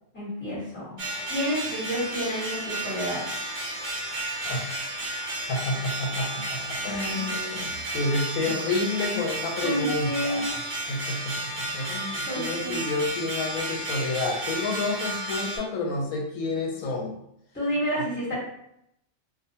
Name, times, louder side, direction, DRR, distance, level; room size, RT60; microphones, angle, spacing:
voice 1, 0.1-1.0 1.3-3.2 9.6-10.5 12.3-12.8 17.5-18.3, equal, 10° left, -9 dB, 1.0 m, -29 dB
sound 1, 1.0-15.6, right 1 dB, 40° right, 0.8 m, -32 dB
voice 2, 4.4-4.9 5.5-10.5 10.9-17.2, left 2 dB, 85° left, 0 dB, 1.0 m, -30 dB
2.4 x 2.1 x 2.7 m, 0.76 s
omnidirectional pair, 1.5 m